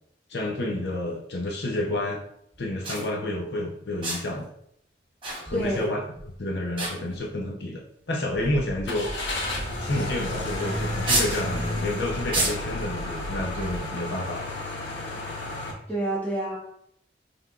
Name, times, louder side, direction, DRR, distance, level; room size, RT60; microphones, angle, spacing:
voice 1, 0.3-2.2 2.6-4.5 5.4-6.0 6.4-7.8 8.1-9.1 9.8-14.5, left 1 dB, 65° left, -1 dB, 0.7 m, -29 dB
sound 1, 2.5-2.6 2.8-3.1 4.0-4.4 5.2-5.9 6.2-6.4 6.8-7.4 8.2-8.3 9.5-9.8 10.1-10.2 11.1-11.5 12.3-12.8 13.6-13.8, right 2 dB, 30° right, 1.2 m, -29 dB
voice 2, 5.5-5.9 15.9-16.6, right 1 dB, 10° left, -5 dB, 1.2 m, -28 dB
sound 2, 8.3-13.8, equal, 55° right, 0.8 m, -39 dB
Car / Engine starting, 8.9-15.7, left 2 dB, 85° left, 1.0 m, -32 dB
5.6 x 3.4 x 2.4 m, 0.71 s
head